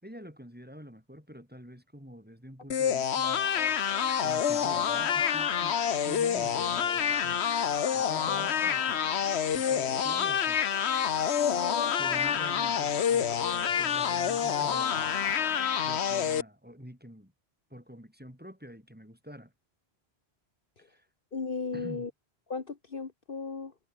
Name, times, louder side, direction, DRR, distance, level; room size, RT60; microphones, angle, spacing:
voice 1, 0.0-3.4 4.2-9.0 9.5-10.6 12.0-15.2 15.8-17.3 17.7-19.5 20.8-21.1 21.7-22.1, equal, 10° right, 7.1 m, -47 dB
sound 1, 2.7-16.4, left 8 dB, 75° left, 1.2 m, -27 dB
voice 2, 11.4-11.9 20.8-20.9 21.3-22.1 22.5-23.7, left 4 dB, 55° left, 1.8 m, -36 dB
omnidirectional pair, 1.1 m